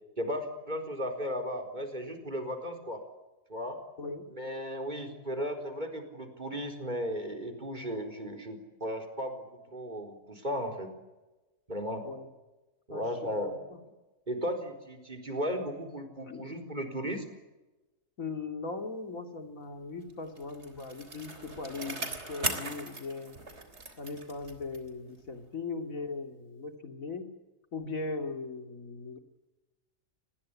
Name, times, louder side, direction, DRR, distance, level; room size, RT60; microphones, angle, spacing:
voice 1, 0.2-3.0 3.5-3.8 4.3-10.9 11.7-12.1 12.9-13.6 14.3-17.3, equal, 35° right, 5 dB, 4.4 m, -35 dB
voice 2, 13.4-13.8 16.2-16.6 18.2-23.4 24.0-27.3 27.7-29.2, left 3 dB, 80° left, 6 dB, 3.1 m, -39 dB
Bicycle, 20.1-25.0 25.4-25.5, right 2 dB, 55° right, 3.7 m, -39 dB
29.0 x 21.0 x 8.6 m, 1.1 s
omnidirectional pair, 1.4 m